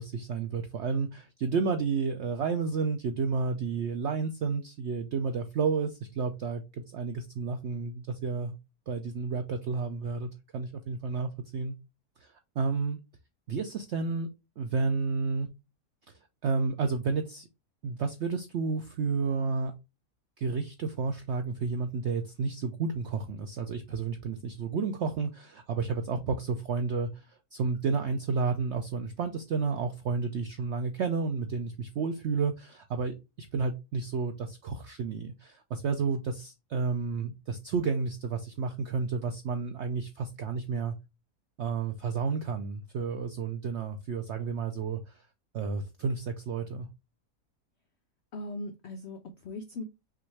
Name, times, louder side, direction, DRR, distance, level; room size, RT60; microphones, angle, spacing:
voice 1, 0.0-8.5 8.9-11.7 12.2-13.0 13.5-14.3 14.6-15.5 16.4-17.5 17.8-19.7 20.4-40.9 41.6-45.2 45.5-46.9, right 4 dB, 75° right, 0.6 m, -31 dB
voice 2, 48.3-49.8, left 2 dB, 80° left, 0.6 m, -39 dB
5.7 x 2.5 x 3.2 m
omnidirectional pair, 1.8 m